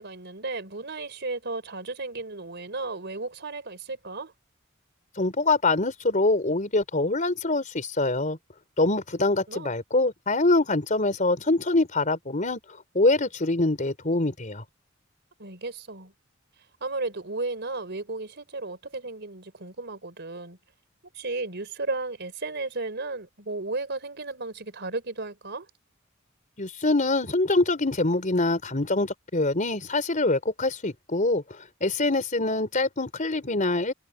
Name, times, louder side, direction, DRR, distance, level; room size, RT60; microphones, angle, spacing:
voice 1, 0.0-4.3 9.5-9.7 15.4-16.1 16.8-20.6 21.1-25.7, right 3 dB, 55° right, 4.3 m, -34 dB
voice 2, 5.2-8.4 8.8-12.6 12.9-14.6 26.6-31.4 31.8-33.9, left 2 dB, 40° left, 4.0 m, -24 dB
head